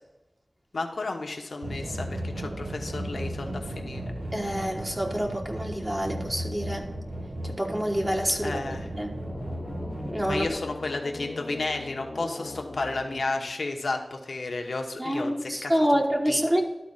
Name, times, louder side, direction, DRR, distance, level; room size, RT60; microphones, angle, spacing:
voice 1, 0.7-4.0 8.4-8.9 10.3-16.4, left 3 dB, 90° left, 3 dB, 1.0 m, -32 dB
sound 1, 1.6-10.5, right 1 dB, 85° right, 1.1 m, -35 dB
voice 2, 4.3-6.9 7.4-8.6 8.9-9.1 10.0-10.5 15.0-16.6, equal, 20° right, 1 dB, 1.3 m, -27 dB
sound 2, 9.1-13.8, left 2 dB, 55° left, 0.8 m, -41 dB
12.0 x 4.2 x 5.6 m, 1.1 s
wide cardioid pair, 65°, 0 cm